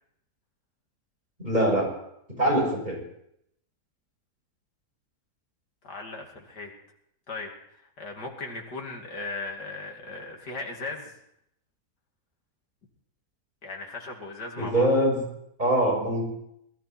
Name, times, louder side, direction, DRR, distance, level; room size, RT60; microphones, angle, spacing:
voice 1, 1.4-1.9 2.4-3.0 14.6-15.2 15.6-16.3, right 1 dB, 25° right, -2 dB, 6.8 m, -23 dB
voice 2, 5.8-6.7 7.3-11.2 13.6-14.9, left 3 dB, 80° left, 1 dB, 3.2 m, -37 dB
21.5 x 13.0 x 4.4 m, 0.76 s
omnidirectional pair, 1.7 m